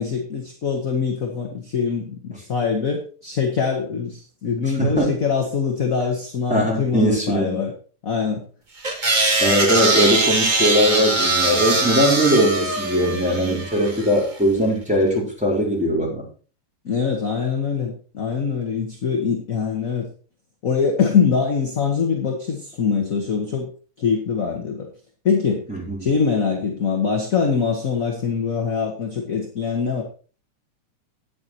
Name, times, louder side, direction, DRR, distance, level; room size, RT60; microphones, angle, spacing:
voice 1, 0.0-7.7 8.0-8.4 16.8-20.1 20.6-23.7 24.0-24.9 25.2-25.6 26.0-30.0, left 6 dB, 40° left, 2 dB, 1.4 m, -23 dB
voice 2, 4.8-5.2 6.5-7.6 9.4-16.3 25.7-26.1, equal, ahead, -4 dB, 4.4 m, -20 dB
sound 1, 8.8-14.2, right 2 dB, 30° right, 0.9 m, -21 dB
9.7 x 9.4 x 4.5 m, 0.39 s
omnidirectional pair, 3.3 m